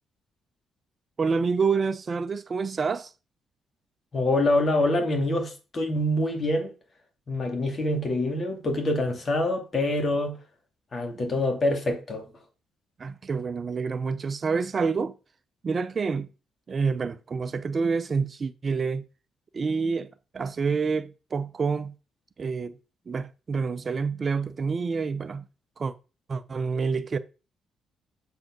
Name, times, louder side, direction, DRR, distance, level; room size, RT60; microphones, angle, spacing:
voice 1, 1.2-3.1 13.0-15.1 15.6-16.3 16.7-19.0 19.5-21.9 22.4-22.7 23.1-25.4 25.8-25.9 26.3-27.2, right 5 dB, 40° right, 0.6 m, -28 dB
voice 2, 4.1-6.7 7.3-10.4 10.9-12.3, left 1 dB, 40° left, 2.7 m, -25 dB
7.5 x 4.8 x 6.1 m
cardioid pair, 90°, 0 cm